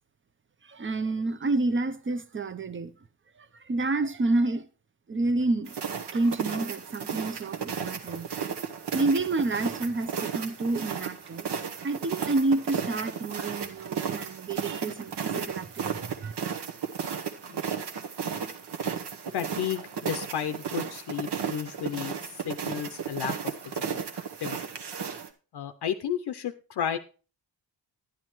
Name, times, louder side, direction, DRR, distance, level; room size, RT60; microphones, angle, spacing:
voice 1, 0.7-2.9 3.7-4.6 5.1-5.7 6.1-8.3 8.9-11.5 11.8-16.3, right 2 dB, 30° right, 0.7 m, -29 dB
sound 1, 5.7-25.3, right 7 dB, 65° right, 1.1 m, -34 dB
voice 2, 19.3-23.5 23.9-24.6 25.5-27.0, left 9 dB, 60° left, 0.6 m, -33 dB
11.0 x 10.5 x 3.0 m
wide cardioid pair, 105°, 43 cm